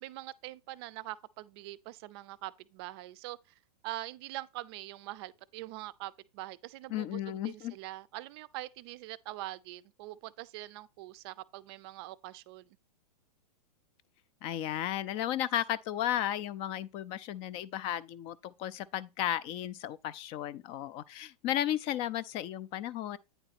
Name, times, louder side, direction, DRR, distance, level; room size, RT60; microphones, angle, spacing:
voice 1, 0.0-3.4 3.8-12.7, right 17 dB, 40° right, 0.5 m, -43 dB
voice 2, 6.9-7.8 14.4-23.2, left 12 dB, 30° left, 0.4 m, -34 dB
9.1 x 3.8 x 4.2 m
hypercardioid pair, 135°, 20 cm